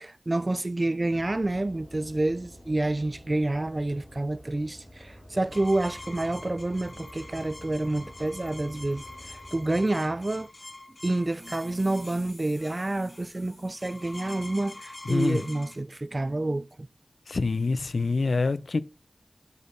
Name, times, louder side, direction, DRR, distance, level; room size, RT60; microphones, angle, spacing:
voice 1, 0.0-10.5 11.0-16.9, right 2 dB, 40° right, 0.4 m, -28 dB
sound 1, 1.1-9.6, equal, 30° left, 3.7 m, -49 dB
sound 2, 5.5-15.8, left 2 dB, 55° left, 1.5 m, -45 dB
sound 3, 10.8-15.0, left 2 dB, 75° left, 4.0 m, -54 dB
voice 2, 15.1-15.4 17.3-18.8, left 3 dB, 90° left, 0.5 m, -26 dB
8.0 x 7.2 x 3.7 m
wide cardioid pair, 50°, 0 cm